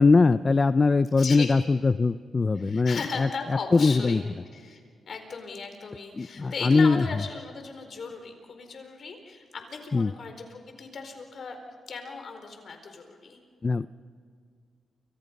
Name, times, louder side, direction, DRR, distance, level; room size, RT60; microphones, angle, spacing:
voice 1, 0.0-3.3 3.7-4.2 6.2-7.0 9.9-10.1 13.6-13.9, left 4 dB, 35° left, 13 dB, 0.6 m, -21 dB
voice 2, 1.1-1.5 2.5-4.2 4.5-4.8 5.1-11.6 11.9-13.4, left 4 dB, 60° left, 6 dB, 4.5 m, -37 dB
29.0 x 26.0 x 5.4 m, 2.1 s
cardioid pair, 70°, 0 cm